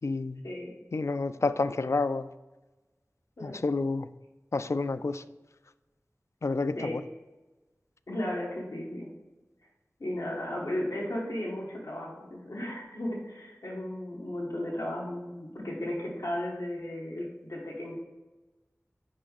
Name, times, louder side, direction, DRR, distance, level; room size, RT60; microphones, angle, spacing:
voice 1, 0.0-0.4 0.9-2.3 3.4-4.1 4.5-5.2 6.4-7.0, left 3 dB, 60° left, 12 dB, 0.3 m, -29 dB
voice 2, 3.4-3.7 6.7-7.0 8.1-9.1 10.0-18.0, left 1 dB, 90° left, -3 dB, 1.5 m, -35 dB
6.3 x 5.3 x 4.0 m, 1.1 s
wide cardioid pair, 40°, 6 cm